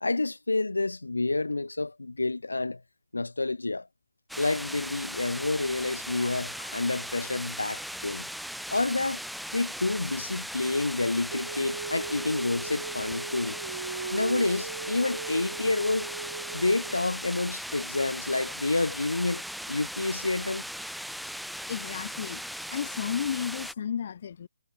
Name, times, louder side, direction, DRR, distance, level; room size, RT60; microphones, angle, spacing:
voice 1, 0.0-2.8 3.1-3.8 4.4-8.3 8.7-9.2 9.5-13.6 14.1-16.1 16.5-19.4 19.7-20.6, left 2 dB, 85° left, 2.1 m, -29 dB
sound 1, 4.3-23.7, equal, ahead, 5.3 m, -38 dB
Female singing, 11.3-17.0, right 4 dB, 75° right, 4.2 m, -37 dB
voice 2, 21.7-22.4 22.7-24.5, left 8 dB, 50° left, 2.1 m, -32 dB
figure-of-eight pair, 140°, 0 cm